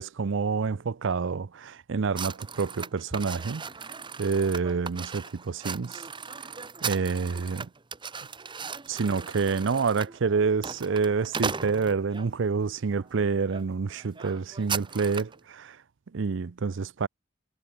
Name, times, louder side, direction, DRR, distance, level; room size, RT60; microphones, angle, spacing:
voice 1, 0.0-3.7 4.2-6.0 6.8-7.7 8.9-15.8 16.1-17.1, right 5 dB, 70° right, 0.5 m, -28 dB
sound 1, 2.1-12.3 12.9-13.1 13.5-13.6 13.9-15.4, right 5 dB, 25° right, 1.0 m, -37 dB
head